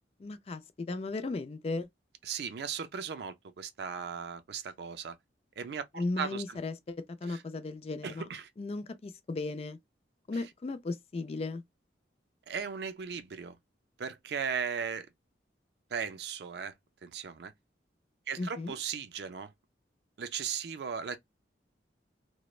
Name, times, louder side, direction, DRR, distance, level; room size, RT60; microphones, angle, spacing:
voice 1, 0.2-1.9 6.0-8.3 8.6-9.8 10.3-11.6 18.4-18.8, left 3 dB, 35° left, 0.3 m, -36 dB
voice 2, 2.3-5.2 5.6-6.6 7.3-7.4 8.0-8.5 12.5-13.6 14.0-15.1 15.9-16.7 17.0-17.5 18.3-19.5 20.2-21.2, right 6 dB, 60° right, 0.4 m, -37 dB
3.0 x 2.0 x 2.3 m
head